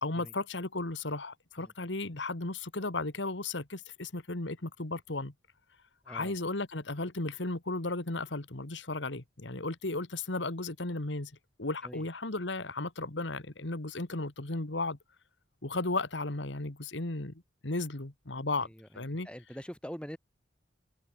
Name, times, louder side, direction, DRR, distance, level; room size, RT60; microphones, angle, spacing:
voice 1, 0.0-5.3 6.1-11.3 11.6-15.0 15.6-18.7 19.0-19.3, left 2 dB, 80° left, 2.0 m, -35 dB
voice 2, 6.0-6.4 11.8-12.1 18.6-20.2, equal, 5° left, 4.0 m, -44 dB
head